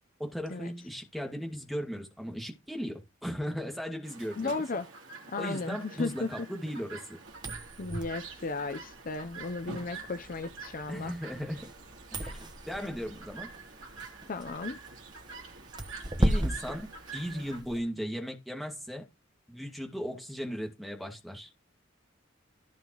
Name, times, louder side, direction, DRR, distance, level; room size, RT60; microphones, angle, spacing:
voice 1, 0.2-4.5 5.4-7.2 10.9-11.7 12.1-13.5 16.2-19.0 19.5-21.5, equal, ahead, 2.0 m, -37 dB
Chirp tweet, 4.0-17.6, right 4 dB, 70° right, 3.0 m, -47 dB
voice 2, 4.4-4.9 5.3-6.3 7.8-11.1 14.3-14.8, left 3 dB, 45° left, 0.6 m, -35 dB
sound 1, 7.3-17.8, right 1 dB, 20° right, 1.2 m, -36 dB
15.5 x 5.6 x 3.0 m
head